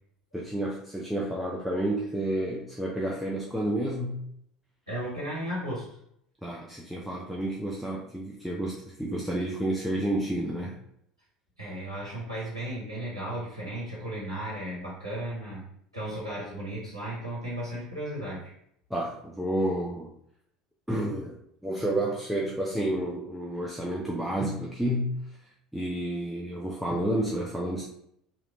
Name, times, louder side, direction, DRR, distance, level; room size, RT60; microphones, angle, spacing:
voice 1, 0.3-4.2 6.4-10.8 18.9-20.1 20.9-21.4 21.6-25.2 25.7-27.8, right 1 dB, ahead, -3 dB, 0.4 m, -30 dB
voice 2, 4.9-5.9 11.6-15.6 15.9-18.5, right 1 dB, 85° right, -7 dB, 0.9 m, -35 dB
3.0 x 2.5 x 3.0 m, 0.72 s
figure-of-eight pair, 65°, 3 cm